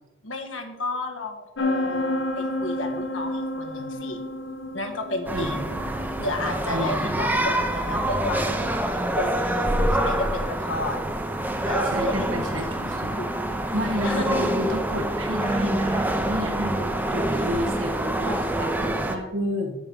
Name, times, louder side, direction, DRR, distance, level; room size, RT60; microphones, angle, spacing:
voice 1, 0.2-4.2 4.7-5.8 6.2-11.0 11.6-12.7 13.2-13.3 14.0-14.5, left 2 dB, 85° left, 4 dB, 1.4 m, -32 dB
sound 1, 1.6-13.1, left 1 dB, 70° left, 1.0 m, -33 dB
sound 2, 5.3-19.2, right 1 dB, 10° right, 0.7 m, -26 dB
voice 2, 6.7-7.5 11.9-13.1 13.7-19.7, equal, 85° right, 2 dB, 1.7 m, -30 dB
7.3 x 7.2 x 5.4 m, 1.1 s
head